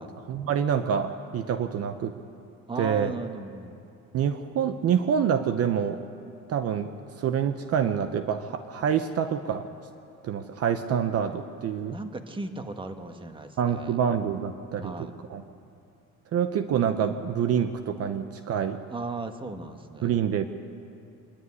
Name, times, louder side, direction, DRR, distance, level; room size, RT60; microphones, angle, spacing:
voice 1, 0.0-2.2 2.8-3.1 4.1-6.0 6.5-9.7 10.2-12.0 13.6-15.4 16.3-18.8 20.0-20.5, right 8 dB, 45° right, 9 dB, 0.9 m, -27 dB
voice 2, 2.7-3.8 11.9-14.0 14.8-15.1 18.9-20.2, right 3 dB, 15° right, 7 dB, 1.3 m, -36 dB
25.0 x 11.5 x 9.7 m, 2.6 s
cardioid pair, 125°, 32 cm